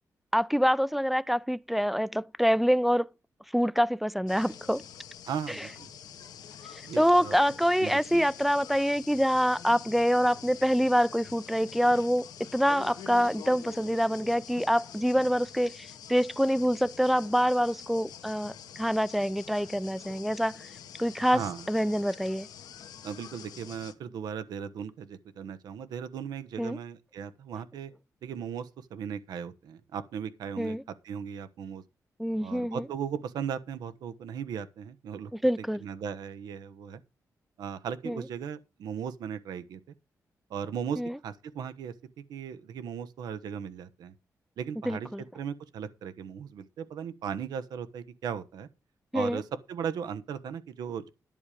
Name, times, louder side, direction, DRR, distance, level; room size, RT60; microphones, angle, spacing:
voice 1, 0.3-3.1 3.5-4.8 5.5-5.7 7.0-20.7 21.0-21.4 21.7-22.5 26.6-26.8 30.6-30.8 32.2-32.8 35.4-35.8 38.1-38.2 41.0-41.2 44.9-45.2 49.1-49.4, equal, 5° right, 0.5 m, -26 dB
sound 1, 4.3-23.9, left 8 dB, 85° left, 1.4 m, -46 dB
voice 2, 5.3-5.9 6.8-7.3 7.8-8.3 21.3-21.7 23.0-27.9 28.2-30.8 31.0-31.8 32.4-35.3 35.8-37.0 37.6-39.8 40.5-41.9 42.3-44.1 44.6-45.1 45.3-48.7 49.1-51.1, right 7 dB, 90° right, 1.2 m, -37 dB
10.5 x 8.5 x 5.1 m
cardioid pair, 65°, 7 cm